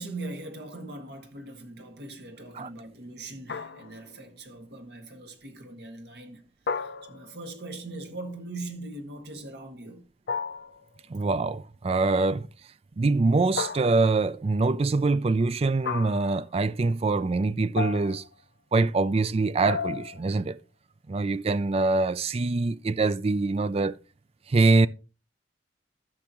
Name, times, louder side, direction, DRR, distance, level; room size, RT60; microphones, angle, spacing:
voice 1, 0.0-10.1, right 2 dB, 60° right, 1.8 m, -41 dB
sound 1, 3.5-4.1 6.7-7.5 10.3-10.9 13.6-14.3 15.8-16.4 17.8-18.3 19.7-20.3, left 5 dB, 65° left, 0.5 m, -33 dB
voice 2, 11.1-12.5 13.0-18.2 18.7-20.6 21.1-24.0 24.5-24.9, right 3 dB, 35° right, 0.4 m, -24 dB
13.5 x 6.3 x 2.9 m
head